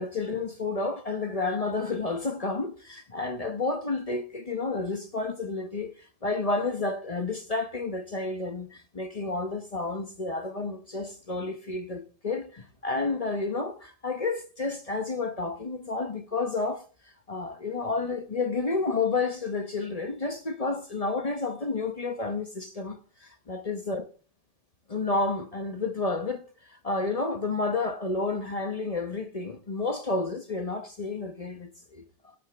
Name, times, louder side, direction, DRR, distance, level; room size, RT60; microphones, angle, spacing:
voice 1, 0.0-16.8 17.3-24.0 24.9-32.0, left 3 dB, 40° left, 0.5 m, -30 dB
17.0 x 8.4 x 3.4 m
omnidirectional pair, 2.1 m